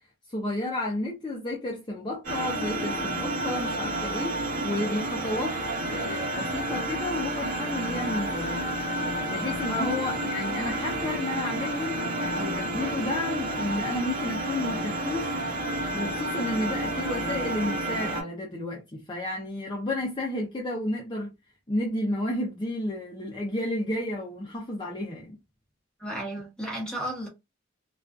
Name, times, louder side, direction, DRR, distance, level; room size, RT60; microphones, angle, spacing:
voice 1, 0.3-4.4 4.6-8.7 9.3-15.4 15.9-21.3 21.7-25.4, left 1 dB, 25° left, 0.5 m, -32 dB
sound 1, 2.2-18.2, right 1 dB, 45° right, 1.2 m, -30 dB
voice 2, 26.0-27.3, equal, 5° left, 0.9 m, -33 dB
2.4 x 2.3 x 2.3 m
head